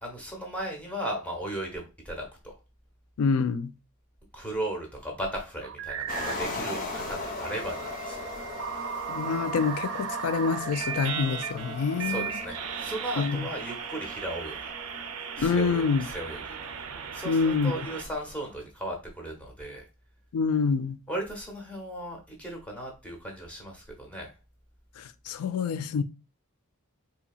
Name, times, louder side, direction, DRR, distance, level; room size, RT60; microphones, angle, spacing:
voice 1, 0.0-2.5 4.3-8.6 12.0-14.7 15.4-16.4 17.1-19.9 21.1-24.3, right 1 dB, 5° left, 1.0 m, -36 dB
voice 2, 3.2-3.7 9.1-12.3 13.2-13.5 15.4-16.0 17.2-17.7 20.3-21.0 25.0-26.0, left 5 dB, 75° left, 0.4 m, -26 dB
sound 1, 5.6-6.6 7.4-18.0, right 7 dB, 65° right, 0.4 m, -37 dB
sound 2, 6.1-18.5, left 3 dB, 40° left, 0.7 m, -40 dB
sound 3, 6.7-18.5, right 3 dB, 40° right, 0.9 m, -45 dB
4.0 x 2.9 x 2.3 m
head